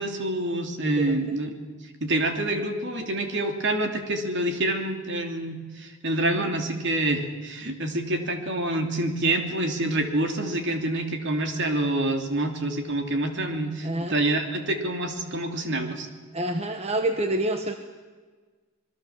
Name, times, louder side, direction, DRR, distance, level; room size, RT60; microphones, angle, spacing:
voice 1, 0.0-1.5 2.0-16.1, right 1 dB, 55° right, 5 dB, 3.0 m, -27 dB
voice 2, 0.8-1.4 6.2-6.5 13.8-14.2 16.3-17.7, right 1 dB, 30° right, 6 dB, 1.2 m, -28 dB
26.5 x 21.5 x 7.4 m, 1.4 s
head